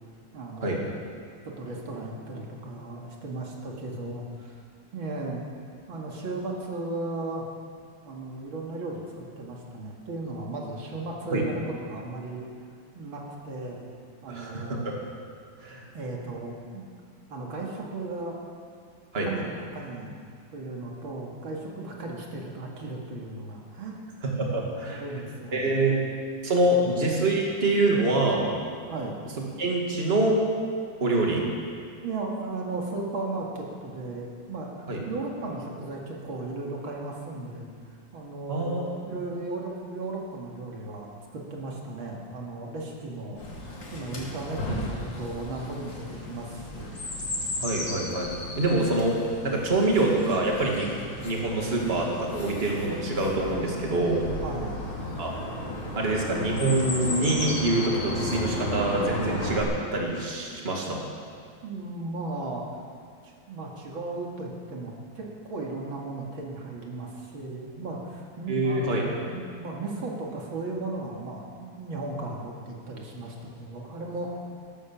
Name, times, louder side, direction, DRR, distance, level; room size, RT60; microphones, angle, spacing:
voice 1, 0.3-0.8 1.5-4.6 4.9-5.5 5.9-7.4 8.0-12.5 12.9-13.9 14.2-14.9 15.9-16.9 17.3-18.4 19.2-20.2 20.5-24.0 24.6-25.9 26.8-27.0 28.9-29.2 32.0-37.7 38.1-43.4 43.9-46.9 47.6-47.8 54.4-54.8 61.6-62.6 63.5-74.4, right 2 dB, 90° right, -1 dB, 2.9 m, -36 dB
voice 2, 14.3-14.9 15.6-15.8 19.1-19.3 24.2-25.0 25.5-26.0 26.4-28.5 29.6-30.4 31.0-31.5 34.9-35.0 38.5-39.2 47.6-49.2 49.4-50.9 51.2-54.2 55.2-55.3 56.0-61.0 68.5-69.1, right 2 dB, 30° right, -1 dB, 2.3 m, -25 dB
Chirp tweet, 43.3-59.6, left 1 dB, 70° left, 3.3 m, -34 dB
15.5 x 12.5 x 7.4 m, 2.2 s
omnidirectional pair, 2.1 m